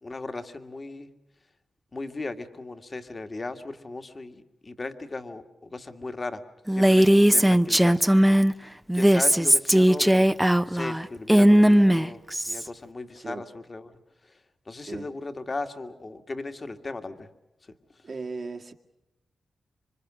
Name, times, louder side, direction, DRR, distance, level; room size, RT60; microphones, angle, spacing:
voice 1, 0.0-1.1 1.9-6.4 6.7-10.3 10.7-13.9 14.2-14.4 14.7-17.3 17.6-18.1, left 3 dB, 40° left, 1.9 m, -37 dB
Female speech woman speaking, 6.7-8.5 8.9-12.7, equal, 5° right, 0.8 m, -18 dB
voice 2, 7.1-7.5 13.2-13.5 14.9-15.1 18.0-18.7, right 4 dB, 55° right, 1.9 m, -37 dB
27.0 x 25.0 x 6.3 m
cardioid pair, 70°, 0 cm